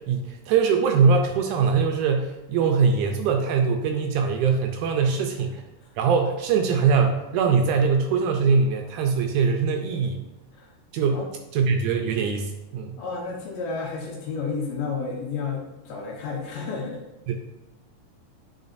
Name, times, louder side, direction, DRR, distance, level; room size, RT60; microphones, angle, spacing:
voice 1, 0.0-5.6 6.0-10.3 10.9-11.2 11.5-13.0 17.3-17.4, right 5 dB, 80° right, 4 dB, 1.9 m, -22 dB
voice 2, 13.0-17.0, left 4 dB, 80° left, -1 dB, 2.9 m, -31 dB
9.4 x 5.0 x 2.6 m, 1.0 s
omnidirectional pair, 3.9 m